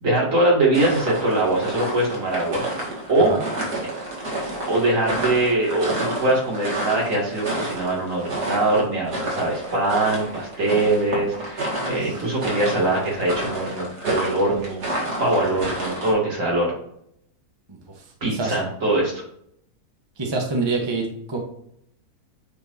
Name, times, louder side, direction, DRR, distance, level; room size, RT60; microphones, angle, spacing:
voice 1, 0.0-2.7 3.1-3.3 4.7-16.7 18.2-19.2, right 2 dB, 55° right, -3 dB, 2.5 m, -22 dB
sound 1, 0.7-16.1, right 1 dB, 85° right, 2.6 m, -30 dB
voice 2, 11.8-12.2 17.7-17.8 18.2-18.6 20.2-21.4, right 3 dB, 20° right, 1 dB, 0.9 m, -26 dB
8.3 x 4.5 x 2.7 m, 0.72 s
omnidirectional pair, 1.7 m